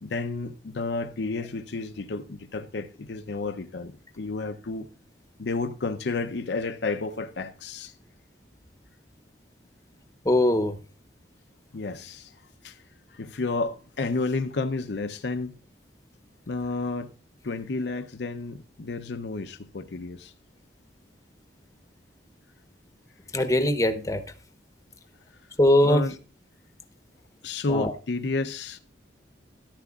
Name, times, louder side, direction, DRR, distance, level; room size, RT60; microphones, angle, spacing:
voice 1, 0.0-4.9 5.4-7.9 11.7-12.3 12.6-12.8 13.1-15.5 16.5-17.1 17.4-20.3 25.8-26.2 27.4-28.8, left 3 dB, 65° left, 0.6 m, -31 dB
voice 2, 10.2-10.8 23.3-24.2 25.6-26.0 27.7-27.9, left 1 dB, 20° left, 0.8 m, -21 dB
13.5 x 11.5 x 2.4 m
head